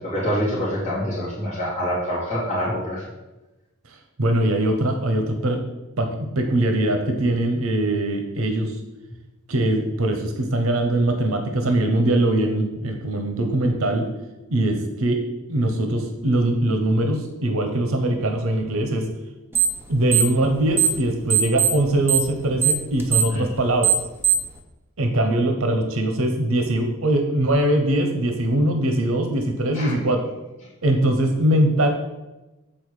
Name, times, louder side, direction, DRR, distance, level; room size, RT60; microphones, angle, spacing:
voice 1, 0.0-3.0 23.3-23.4 29.7-29.9, equal, 35° left, -12 dB, 2.6 m, -26 dB
voice 2, 3.9-5.6 6.0-8.8 9.5-14.1 14.5-15.2 15.5-19.1 19.9-23.9 25.0-30.2 30.8-31.9, right 1 dB, 85° right, 5 dB, 0.9 m, -22 dB
sound 1, 19.5-19.8 20.1-21.0 21.3-24.5, right 10 dB, 10° right, 0.8 m, -20 dB
7.7 x 4.4 x 4.8 m, 1.0 s
head